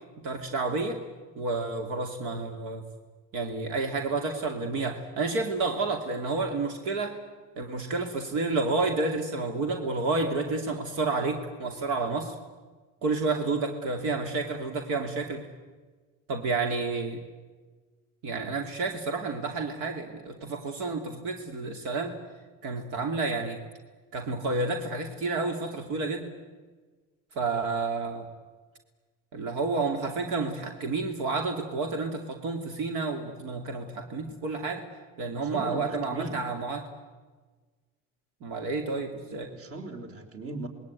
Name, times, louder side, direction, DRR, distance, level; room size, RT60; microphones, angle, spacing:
voice 1, 0.2-1.0 1.3-2.8 3.3-7.2 7.6-12.3 13.0-15.5 16.3-17.2 18.2-22.1 22.6-23.6 24.1-26.3 27.3-28.3 29.3-34.8 35.2-36.9 38.4-39.5, right 3 dB, 75° right, 4 dB, 2.9 m, -30 dB
voice 2, 35.4-36.4 39.5-40.7, right 2 dB, 45° right, 6 dB, 4.3 m, -38 dB
27.5 x 21.0 x 9.4 m, 1.3 s
cardioid pair, 135°, 31 cm